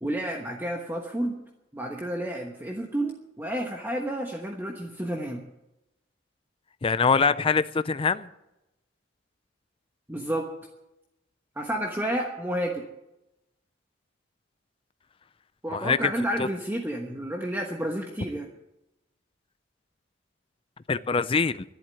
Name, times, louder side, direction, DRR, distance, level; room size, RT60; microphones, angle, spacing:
voice 1, 0.0-1.4 1.7-5.4 10.1-10.6 11.6-12.8 15.6-18.5, right 1 dB, 10° right, 1 dB, 1.2 m, -30 dB
voice 2, 6.8-8.3 15.7-16.1 16.4-16.5 20.9-21.6, left 5 dB, 30° left, 14 dB, 0.4 m, -24 dB
12.0 x 11.0 x 9.5 m, 0.92 s
head